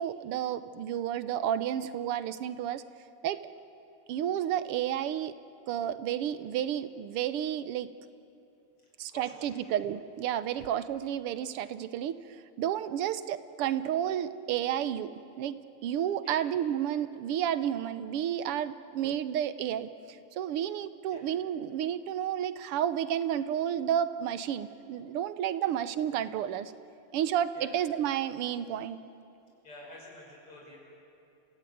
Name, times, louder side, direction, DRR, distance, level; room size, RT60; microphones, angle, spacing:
voice 1, 0.0-2.8 3.2-3.4 4.1-5.3 5.7-7.9 9.0-12.2 12.6-15.1 15.4-26.7 27.1-29.0, right 10 dB, 90° right, 13 dB, 1.8 m, -31 dB
voice 2, 8.8-9.7 10.5-10.7 16.2-16.4 21.1-21.2 25.6-25.7 27.5-27.7 29.6-30.8, left 1 dB, 85° left, -2 dB, 7.0 m, -50 dB
30.0 x 16.0 x 9.4 m, 2.8 s
omnidirectional pair, 2.4 m